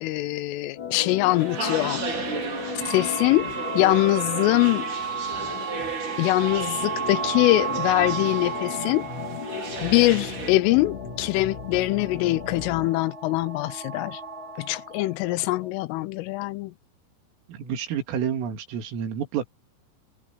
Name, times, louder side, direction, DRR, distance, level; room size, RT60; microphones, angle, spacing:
voice 1, 0.0-2.0 2.9-4.9 6.2-9.1 9.8-14.2 14.6-16.7, left 18 dB, 80° left, 3.2 m, -23 dB
Organ, 0.7-12.9, left 6 dB, 55° left, 5.1 m, -36 dB
sound 1, 1.3-10.5, right 4 dB, 40° right, 6.1 m, -35 dB
sound 2, 2.8-15.7, right 6 dB, 15° right, 3.1 m, -34 dB
voice 2, 17.5-19.5, right 8 dB, 80° right, 5.3 m, -29 dB
omnidirectional pair, 5.8 m